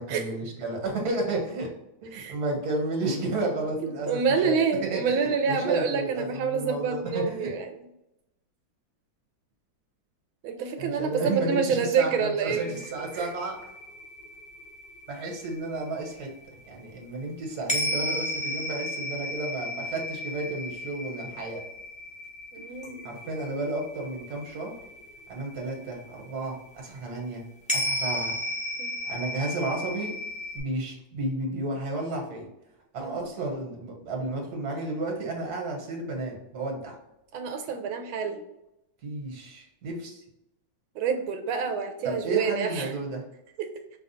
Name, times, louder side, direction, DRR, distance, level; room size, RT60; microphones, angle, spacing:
voice 1, 0.0-1.7 2.0-7.5 10.8-13.7 15.1-16.3 16.7-21.6 23.0-24.7 25.3-27.4 27.7-28.4 29.0-30.2 30.5-32.5 32.9-36.9 39.0-40.2 42.0-43.2, right 2 dB, 55° right, 1 dB, 1.6 m, -32 dB
voice 2, 3.8-7.7 10.4-12.7 13.1-13.3 22.5-23.1 28.8-29.1 33.0-33.2 37.3-38.4 41.0-42.9 43.6-43.7, right 6 dB, 80° right, 5 dB, 1.4 m, -28 dB
sound 1, 12.6-16.2 17.7-25.8 26.2-26.3 27.7-30.6, left 1 dB, 10° left, 0.4 m, -34 dB
5.4 x 2.3 x 4.2 m, 0.87 s
omnidirectional pair, 2.2 m